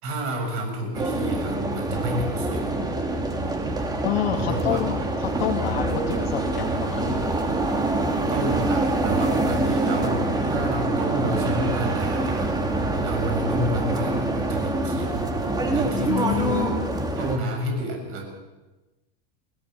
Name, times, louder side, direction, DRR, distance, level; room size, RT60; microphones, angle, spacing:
voice 1, 0.0-2.8 4.4-4.8 8.3-12.5 13.0-16.7 17.2-18.3, right 1 dB, 45° right, 2 dB, 6.9 m, -30 dB
sound 1, 0.9-17.4, right 2 dB, 15° right, 2.4 m, -25 dB
voice 2, 4.0-7.4 14.9-15.1 15.9-17.0, left 12 dB, 80° left, 2 dB, 2.0 m, -29 dB
22.0 x 15.5 x 8.0 m, 1.1 s
supercardioid pair, 140°, 30 cm